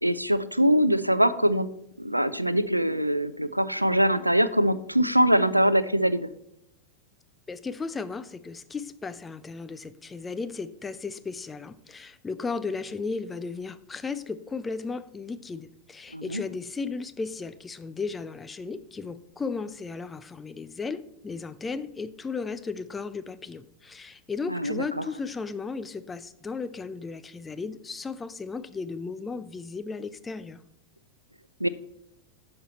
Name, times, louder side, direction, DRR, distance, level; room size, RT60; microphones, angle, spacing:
voice 1, 0.0-1.7 2.0-6.3 16.1-16.4 24.5-25.1 31.6-31.7, equal, 90° right, 15 dB, 0.5 m, -23 dB
voice 2, 7.5-30.6, left 4 dB, 15° left, 13 dB, 0.5 m, -35 dB
10.5 x 6.7 x 4.2 m, 0.77 s
figure-of-eight pair, 90°, 0 cm